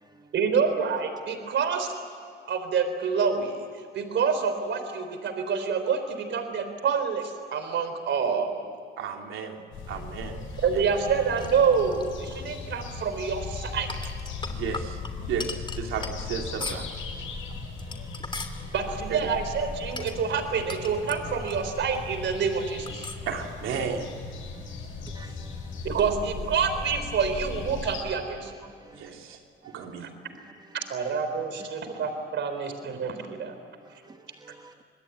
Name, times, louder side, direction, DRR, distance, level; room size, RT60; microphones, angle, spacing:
voice 1, 0.3-1.9 2.5-3.6 3.9-8.7 10.6-13.9 18.7-23.1 25.8-28.5 30.7-33.6, right 6 dB, 65° right, 3.9 m, -27 dB
voice 2, 9.0-9.6 9.9-10.4 10.7-10.8 14.4-16.9 19.1-19.3 23.2-24.1 28.9-30.1, right 6 dB, 85° right, 3.3 m, -34 dB
sound 1, 9.7-28.0, left 4 dB, 85° left, 6.7 m, -38 dB
sound 2, 10.5-12.4 13.7-17.0 17.6-18.6 19.9-22.0 22.3-22.4 22.9-23.3, left 3 dB, 25° left, 3.0 m, -39 dB
voice 3, 25.0-25.8 28.6-29.0 34.0-34.7, right 2 dB, 20° right, 1.6 m, -52 dB
26.0 x 21.5 x 9.6 m
cardioid pair, 90°, 20 cm